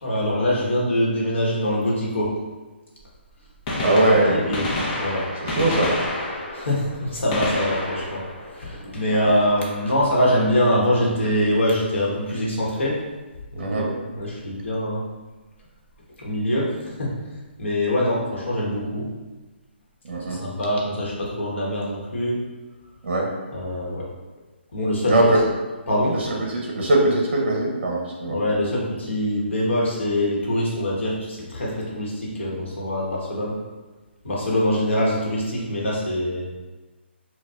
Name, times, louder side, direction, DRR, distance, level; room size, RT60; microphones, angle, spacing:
voice 1, 0.0-2.3 3.7-4.7 5.0-5.3 6.5-13.0 13.5-15.0 16.2-17.1 17.6-19.1 20.3-22.4 23.5-24.1 24.7-25.2 25.9-26.2 28.2-33.6 34.2-36.5, left 1 dB, 75° left, -4 dB, 1.1 m, -24 dB
Gunshot gunfire, 3.0-3.1 3.5-9.4 11.3-11.5 12.5-12.6 14.2-14.3 15.6-15.7 15.9-16.0, left 1 dB, 35° left, 0.7 m, -29 dB
voice 2, 3.8-4.5 5.4-6.0 13.6-13.9 20.0-20.4 23.0-23.3 25.1-25.4 26.1-28.4, right 2 dB, 55° right, -1 dB, 0.7 m, -21 dB
4.1 x 2.2 x 2.4 m, 1.2 s
hypercardioid pair, 150°, 6 cm